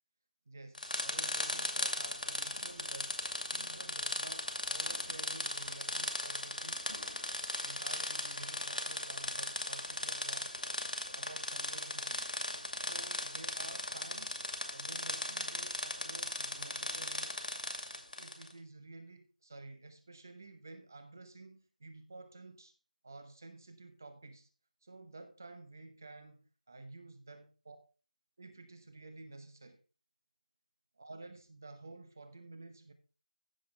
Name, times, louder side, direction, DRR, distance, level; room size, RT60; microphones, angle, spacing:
voice 1, 0.5-6.9 7.6-10.5 11.1-12.3 12.8-14.4 14.7-17.4 18.0-22.7 23.0-24.5 24.8-27.8 28.4-29.8 31.0-32.9, right 2 dB, 25° right, 0.8 m, -52 dB
sound 1, 0.7-18.5, left 1 dB, 80° left, 2.5 m, -38 dB
15.0 x 6.0 x 3.4 m
figure-of-eight pair, 175°, 4 cm